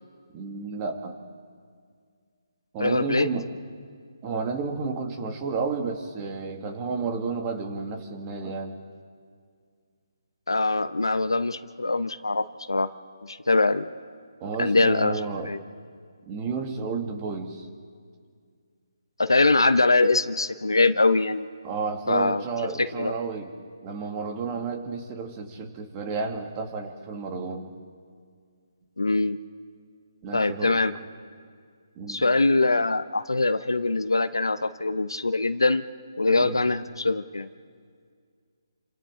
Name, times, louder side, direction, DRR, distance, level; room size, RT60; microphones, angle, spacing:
voice 1, 0.3-1.2 2.7-3.5 4.2-8.8 14.4-15.5 16.3-17.7 21.6-23.5 23.8-27.7 30.2-30.8 32.0-32.2 36.4-36.7, right 4 dB, 25° right, 4 dB, 2.3 m, -31 dB
voice 2, 2.8-3.3 10.5-12.9 13.3-13.9 14.6-15.6 19.2-21.5 22.1-22.4 22.8-23.1 29.0-29.4 30.3-30.9 32.1-35.8 36.2-37.5, left 3 dB, 85° left, 10 dB, 0.9 m, -23 dB
28.5 x 26.5 x 3.9 m, 2.1 s
figure-of-eight pair, 150°, 2 cm